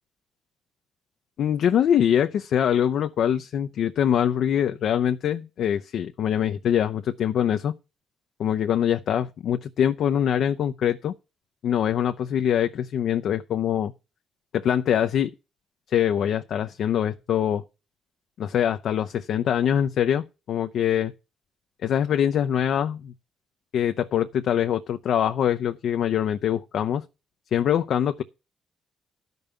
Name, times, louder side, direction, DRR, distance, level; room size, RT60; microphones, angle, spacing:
voice 1, 1.4-7.7 8.4-11.1 11.6-13.9 14.5-15.3 15.9-17.6 18.4-21.1 21.8-23.1 23.7-27.0 27.5-28.2, left 9 dB, 70° left, 0.6 m, -23 dB
12.0 x 5.4 x 6.8 m
cardioid pair, 90°, 0 cm